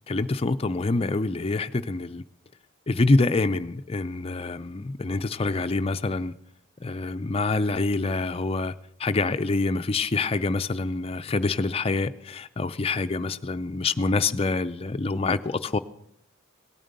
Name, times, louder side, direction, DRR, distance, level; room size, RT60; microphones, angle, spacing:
voice 1, 0.1-2.2 2.9-6.3 6.8-8.7 9.0-15.8, left 3 dB, 30° left, 10 dB, 0.5 m, -26 dB
17.5 x 9.2 x 6.6 m, 0.72 s
head